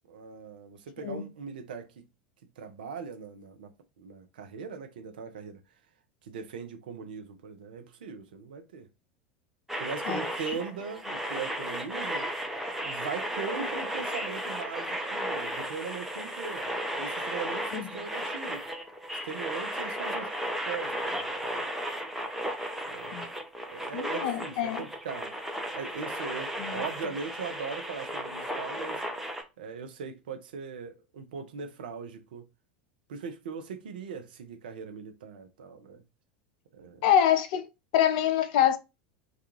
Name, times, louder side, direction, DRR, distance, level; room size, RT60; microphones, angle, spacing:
voice 1, 0.1-2.0 2.6-3.7 4.0-5.6 6.2-8.9 9.8-12.3 12.8-18.6 19.2-20.4 20.6-21.6 22.9-23.3 23.7-25.3 25.7-29.0 29.6-32.5 33.1-36.0 36.7-37.1, right 6 dB, 70° right, 0.6 m, -40 dB
sound 1, 9.7-29.4, equal, 5° right, 0.6 m, -34 dB
voice 2, 23.9-24.8 26.6-26.8 37.0-37.6 37.9-38.8, left 10 dB, 55° left, 0.4 m, -25 dB
2.3 x 2.3 x 2.9 m
figure-of-eight pair, 80°, 5 cm